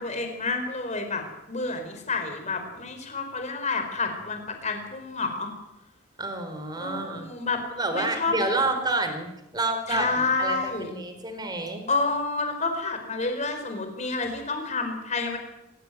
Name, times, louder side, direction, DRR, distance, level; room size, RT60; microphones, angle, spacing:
voice 1, 0.0-5.5 6.8-7.6 7.9-8.8 9.9-10.9 11.9-15.4, left 3 dB, 35° left, 6 dB, 4.7 m, -29 dB
voice 2, 6.2-7.3 7.8-11.9, right 2 dB, 20° right, 7 dB, 3.6 m, -29 dB
26.5 x 16.0 x 9.4 m, 0.91 s
head